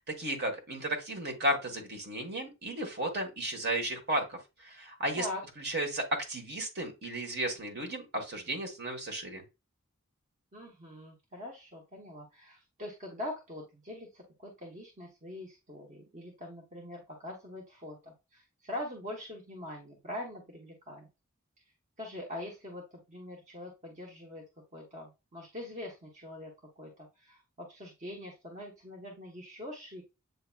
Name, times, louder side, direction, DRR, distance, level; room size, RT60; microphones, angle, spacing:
voice 1, 0.2-5.3 5.6-9.4, right 1 dB, 50° right, 3 dB, 1.3 m, -34 dB
voice 2, 10.5-21.1 22.0-24.4 24.7-30.0, left 1 dB, 35° right, -1 dB, 1.0 m, -43 dB
8.0 x 2.9 x 2.2 m, 0.25 s
head